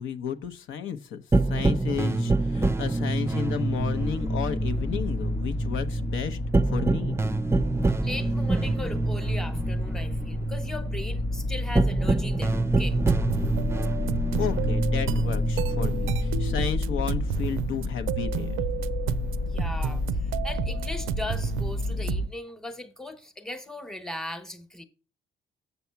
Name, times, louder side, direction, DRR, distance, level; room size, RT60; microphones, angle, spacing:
voice 1, 0.0-7.2 14.0-18.6, left 7 dB, 80° left, 0.9 m, -33 dB
sound 1, 1.3-16.6, right 2 dB, 15° right, 0.5 m, -27 dB
sound 2, 3.3-22.3, left 3 dB, 55° left, 0.8 m, -31 dB
voice 2, 8.0-13.0 19.4-20.0 20.4-24.8, left 1 dB, ahead, 1.1 m, -38 dB
sound 3, 12.9-22.3, right 12 dB, 90° right, 0.4 m, -32 dB
7.0 x 6.9 x 5.7 m
cardioid pair, 90°, 20 cm